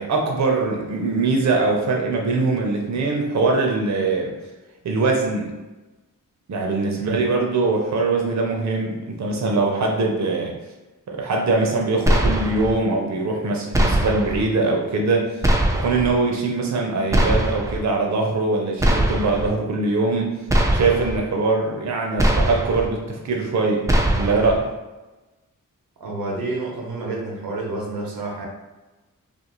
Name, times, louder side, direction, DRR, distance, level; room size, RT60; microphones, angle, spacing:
voice 1, 0.0-4.3 4.8-5.5 6.5-10.5 11.1-15.4 15.7-20.3 20.7-24.7, right 3 dB, 55° right, 1 dB, 0.6 m, -22 dB
sound 1, 12.1-12.7 13.7-14.4 15.4-16.1 17.1-17.8 18.8-19.5 20.5-21.2 22.2-22.9 23.9-24.6, right 1 dB, 10° right, 0.3 m, -20 dB
voice 2, 26.0-28.5, right 3 dB, 90° right, -1 dB, 0.7 m, -29 dB
2.5 x 2.4 x 2.9 m, 1.1 s
cardioid pair, 55°, 34 cm